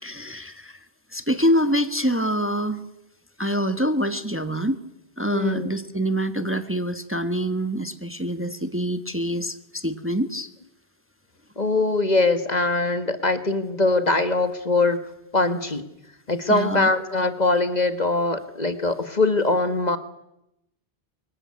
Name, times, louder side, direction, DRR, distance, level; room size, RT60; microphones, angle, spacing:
voice 1, 0.0-0.8 1.1-2.8 3.4-4.8 5.2-10.5 16.5-16.9, equal, 10° right, 10 dB, 1.4 m, -25 dB
voice 2, 5.3-5.7 11.6-15.0 15.3-15.8 16.3-20.0, left 2 dB, 40° left, 10 dB, 1.7 m, -22 dB
24.5 x 22.0 x 9.7 m, 0.85 s
omnidirectional pair, 1.1 m